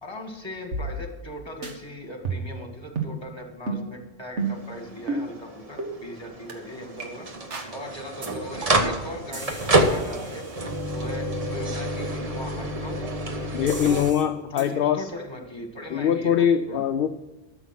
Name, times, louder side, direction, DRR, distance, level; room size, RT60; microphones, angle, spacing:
voice 1, 0.0-7.3 7.7-10.4 10.9-11.3 11.5-13.0 13.7-14.1 14.5-16.9, left 1 dB, 25° left, 3 dB, 1.8 m, -39 dB
sound 1, 0.7-1.3 1.6-1.7 2.2-2.6 3.0-3.2 3.7-3.8 4.4-4.7 5.1-5.2 5.8-5.9 6.5-6.6 7.0-7.1 7.5-7.7 8.2-8.3 8.6-8.9 9.3-11.2 13.7-14.2 14.6-14.7, right 3 dB, 85° right, 1.8 m, -33 dB
sound 2, 4.4-14.1, right 1 dB, 35° right, 1.0 m, -28 dB
voice 2, 13.5-15.1 15.9-17.1, left 8 dB, 60° left, 8 dB, 0.7 m, -22 dB
12.5 x 7.0 x 5.9 m, 1.1 s
omnidirectional pair, 1.2 m